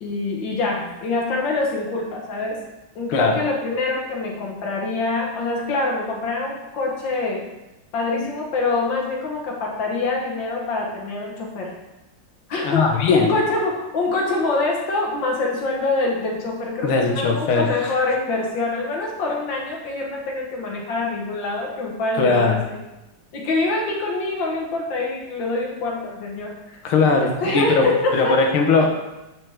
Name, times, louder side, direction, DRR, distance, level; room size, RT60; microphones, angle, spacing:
voice 1, 0.0-2.6 3.0-7.4 7.9-11.7 12.5-22.8 23.3-26.8 27.2-28.4, left 3 dB, 60° left, -1 dB, 1.9 m, -25 dB
voice 2, 3.1-3.4 12.6-13.3 16.8-18.0 22.2-22.6 26.8-29.0, left 4 dB, 80° left, 3 dB, 1.8 m, -19 dB
8.5 x 6.0 x 3.5 m, 1.0 s
omnidirectional pair, 2.4 m